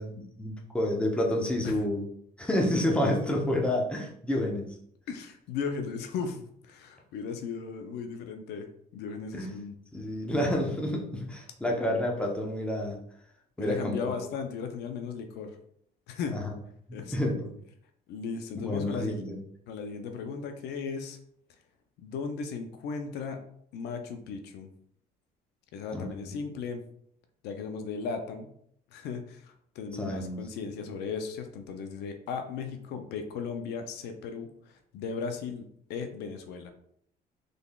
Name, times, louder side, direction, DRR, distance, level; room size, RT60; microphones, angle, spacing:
voice 1, 0.0-2.1 2.4-4.7 9.4-9.5 9.9-13.0 13.6-14.1 16.3-16.5 16.9-17.5 18.6-19.4 25.9-26.3 30.0-30.4, left 1 dB, 5° left, -1 dB, 0.8 m, -29 dB
voice 2, 5.1-8.7 8.9-9.7 13.6-15.6 16.1-16.4 16.9-17.3 18.1-19.2 19.7-21.2 22.0-23.4 23.7-24.7 25.7-26.8 27.4-28.5 28.9-36.7, left 5 dB, 80° left, 6 dB, 0.5 m, -36 dB
3.9 x 3.3 x 2.3 m, 0.68 s
cardioid pair, 110°, 17 cm